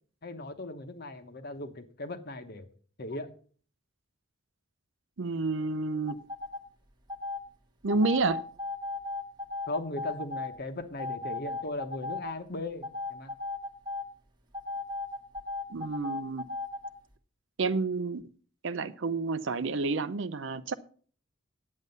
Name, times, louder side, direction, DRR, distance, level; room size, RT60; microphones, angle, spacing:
voice 1, 0.2-2.7 3.0-3.3 9.7-13.3, left 2 dB, 50° left, 1.1 m, -38 dB
voice 2, 5.2-6.2 7.8-8.4 15.7-16.4 17.6-18.2 18.6-20.7, right 3 dB, 65° right, 0.6 m, -29 dB
sound 1, 6.1-6.6 7.1-7.4 7.9-10.5 11.0-12.3 12.8-14.1 14.5-16.9, left 3 dB, 20° right, 1.2 m, -36 dB
9.7 x 8.3 x 5.5 m
head